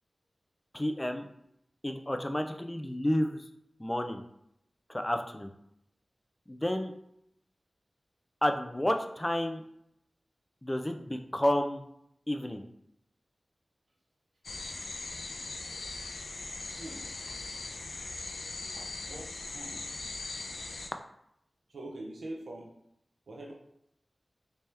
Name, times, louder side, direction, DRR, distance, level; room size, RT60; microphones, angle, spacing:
voice 1, 0.7-1.3 1.8-3.4 3.8-4.2 4.9-5.5 6.5-6.9 8.4-9.6 10.6-11.8 12.3-12.6, left 1 dB, 15° left, 6 dB, 0.4 m, -30 dB
sound 1, 14.4-20.9, left 3 dB, 90° left, 0.4 m, -40 dB
voice 2, 18.7-19.9 21.7-22.7 23.3-23.5, right 1 dB, 85° right, -2 dB, 0.7 m, -43 dB
3.3 x 2.8 x 3.3 m, 0.77 s
wide cardioid pair, 75°, 0 cm